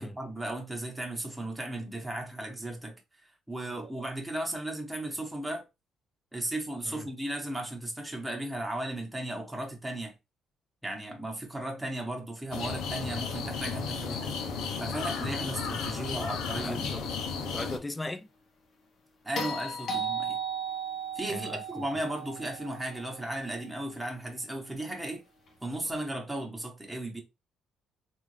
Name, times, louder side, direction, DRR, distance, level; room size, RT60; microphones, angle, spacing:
voice 1, 0.0-2.9 3.5-5.6 6.3-10.1 10.8-14.3 14.6-16.9 19.2-20.4 21.1-25.2 25.6-27.2, right 1 dB, 10° right, 1.3 m, -35 dB
sound 1, 12.5-17.8, left 5 dB, 80° left, 0.7 m, -34 dB
voice 2, 16.5-17.1 17.4-18.3 21.3-21.8, left 2 dB, 15° left, 0.4 m, -39 dB
sound 2, 19.4-23.6 25.9-26.0, right 4 dB, 55° left, 1.0 m, -36 dB
3.5 x 2.6 x 3.3 m
cardioid pair, 90°, 0 cm